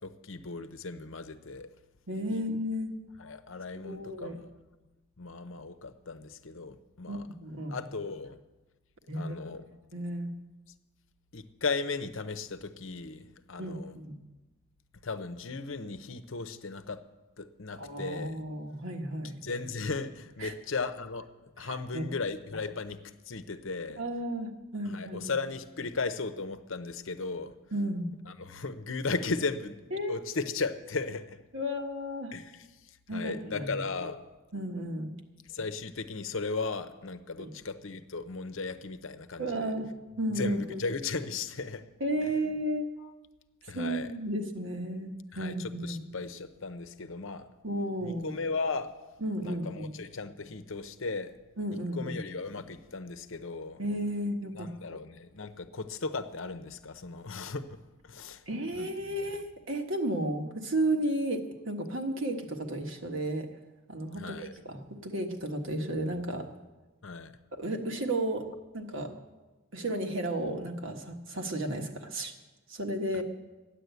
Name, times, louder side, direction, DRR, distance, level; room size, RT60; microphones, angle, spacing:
voice 1, 0.0-1.7 2.3-2.4 3.2-4.5 5.2-7.3 7.7-8.4 9.1-9.7 11.3-13.9 15.0-17.0 17.4-18.4 19.2-21.3 21.6-24.0 24.8-27.5 28.3-29.8 30.1-31.4 32.3-34.2 35.5-39.8 40.4-41.9 42.2-42.3 43.7-44.1 45.3-47.5 48.0-49.0 49.4-51.3 51.9-53.8 54.6-57.8 58.0-58.4 58.8-58.9 59.2-59.4 64.2-64.5 67.0-67.4 73.1-73.2, left 4 dB, 60° left, 10 dB, 0.8 m, -36 dB
voice 2, 2.1-2.9 3.8-4.4 7.1-7.8 9.1-9.3 9.9-10.3 13.6-14.2 17.8-19.4 20.4-20.5 21.6-22.1 24.0-25.3 27.7-28.1 29.9-30.2 31.5-32.3 33.1-33.7 34.5-35.1 37.4-37.5 39.4-39.9 40.2-40.8 42.0-42.9 43.6-46.0 47.6-48.3 49.2-50.0 51.6-52.2 53.8-54.7 58.5-63.5 63.9-66.5 67.5-68.5 68.7-69.1 69.7-72.3 72.7-73.2, right 1 dB, 60° right, 4 dB, 1.5 m, -33 dB
13.0 x 10.0 x 8.1 m, 1.1 s
head